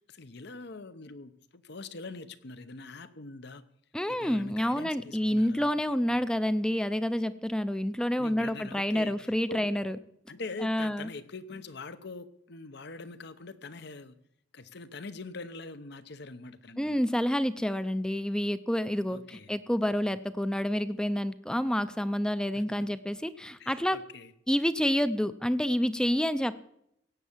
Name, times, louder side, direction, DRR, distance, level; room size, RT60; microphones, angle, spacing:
voice 1, 0.1-1.3 1.7-3.6 4.2-5.6 8.2-9.1 9.5-9.7 10.3-14.1 14.5-16.9 19.1-19.5 23.6-24.3, left 3 dB, 60° left, 0.9 m, -43 dB
voice 2, 3.9-10.0 10.6-11.1 16.8-24.0 24.5-26.5, equal, 5° left, 0.5 m, -28 dB
16.5 x 8.2 x 7.4 m
head